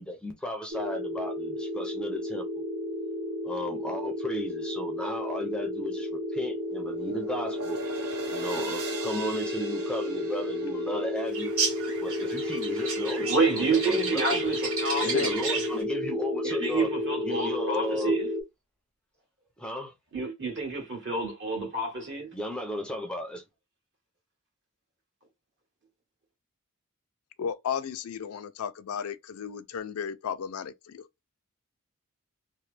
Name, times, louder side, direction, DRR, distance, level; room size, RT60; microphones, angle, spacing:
voice 1, 0.0-2.5 3.4-7.8 8.3-11.5 12.0-14.4 15.0-16.9 17.2-18.2 19.6-19.9 22.3-23.4, left 1 dB, 5° left, 0.5 m, -34 dB
sound 1, 0.7-18.4, left 1 dB, 30° right, 1.1 m, -32 dB
sound 2, 6.0-12.4, right 3 dB, 90° right, 0.9 m, -41 dB
sound 3, 11.3-15.8, right 4 dB, 75° right, 1.8 m, -33 dB
voice 2, 13.3-15.1 16.4-18.3 20.1-22.3, right 3 dB, 55° right, 1.6 m, -29 dB
voice 3, 27.4-31.0, left 7 dB, 80° left, 0.4 m, -34 dB
2.9 x 2.1 x 3.2 m
head